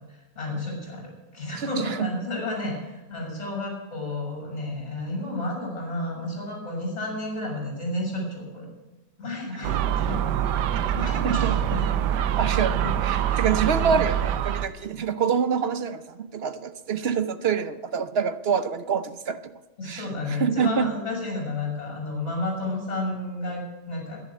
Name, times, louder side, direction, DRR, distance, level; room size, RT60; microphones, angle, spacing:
voice 1, 0.1-8.7 9.2-11.8 12.4-13.0 13.3-14.0 19.8-24.2, left 2 dB, 40° left, 7.2 m, -32 dB
voice 2, 1.8-2.1 11.2-11.8 12.2-19.5 19.8-20.9, right 7 dB, 55° right, 0.7 m, -26 dB
Gull seagull, 9.6-14.7, right 10 dB, 85° right, 1.3 m, -25 dB
11.0 x 10.5 x 8.4 m
omnidirectional pair, 1.8 m